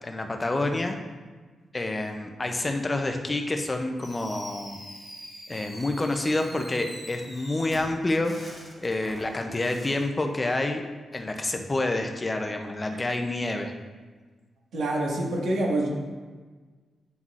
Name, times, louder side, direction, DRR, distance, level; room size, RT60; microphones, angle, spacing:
voice 1, 0.0-1.0 1.7-4.8 5.5-10.9 11.1-13.7, left 2 dB, 20° left, 4 dB, 0.5 m, -28 dB
Fireworks, 4.0-10.1, equal, 15° right, 1.7 m, -44 dB
voice 2, 14.7-15.9, right 1 dB, 90° right, -2 dB, 1.6 m, -26 dB
9.3 x 5.6 x 2.4 m, 1.4 s
wide cardioid pair, 165°, 0 cm